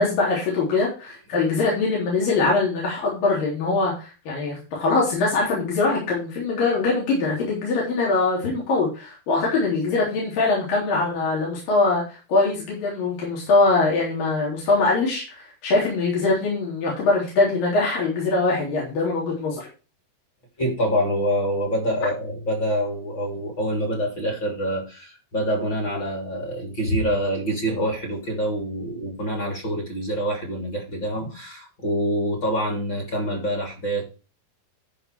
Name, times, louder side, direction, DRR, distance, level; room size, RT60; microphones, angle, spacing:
voice 1, 0.0-19.7, left 3 dB, 55° left, -4 dB, 5.3 m, -22 dB
voice 2, 20.6-34.0, equal, 30° left, 1 dB, 3.3 m, -26 dB
12.0 x 5.9 x 4.7 m, 0.33 s
omnidirectional pair, 4.8 m